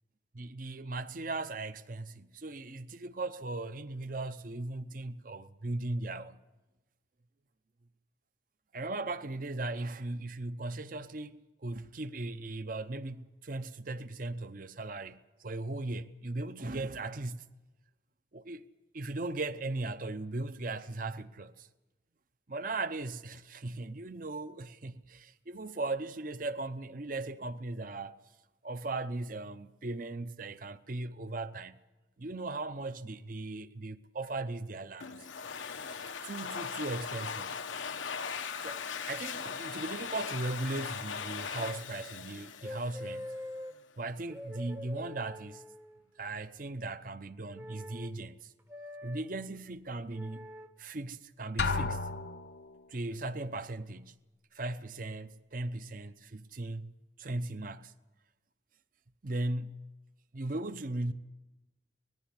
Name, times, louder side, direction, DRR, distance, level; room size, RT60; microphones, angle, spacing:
voice 1, 0.3-6.4 8.7-17.5 18.3-18.6 18.9-21.7 22.5-28.1 28.6-31.8 32.2-35.3 36.2-37.6 38.6-43.3 44.0-45.6 46.2-48.5 49.0-50.5 50.8-52.1 52.9-54.2 54.5-57.9 59.2-59.9 60.3-61.1, right 2 dB, 45° right, 0.7 m, -38 dB
Domestic sounds home sounds, 35.0-43.4, left 6 dB, 90° left, 1.0 m, -39 dB
sound 1, 42.6-43.7 44.3-46.0 47.5-48.1 48.7-49.2 50.1-50.7 51.6-51.9, left 1 dB, 15° right, 0.8 m, -44 dB
Drum, 51.6-52.8, left 4 dB, 60° left, 0.9 m, -32 dB
19.0 x 14.5 x 10.0 m
head